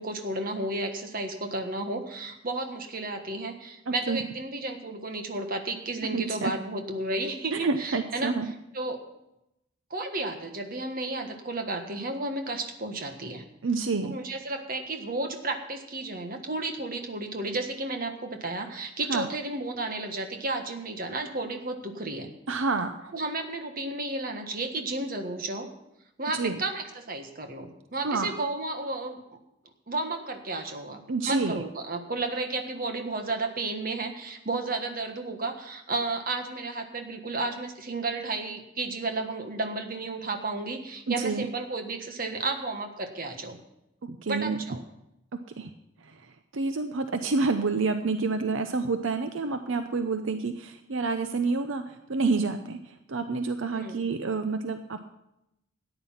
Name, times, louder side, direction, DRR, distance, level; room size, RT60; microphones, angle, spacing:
voice 1, 0.0-8.3 8.7-9.0 9.9-13.4 14.0-22.3 23.1-25.7 26.2-29.2 29.9-31.0 31.3-43.6 44.3-44.8 53.7-54.0, right 2 dB, 45° right, 5 dB, 1.4 m, -32 dB
voice 2, 3.9-4.3 6.1-6.5 7.5-8.5 13.6-14.1 19.1-19.3 22.5-23.1 26.3-26.6 28.0-28.3 31.1-31.6 41.1-41.5 44.0-44.6 45.6-45.7 46.0-46.2 46.5-55.0, right 4 dB, 75° right, 8 dB, 0.7 m, -28 dB
13.5 x 9.6 x 5.7 m, 0.85 s
head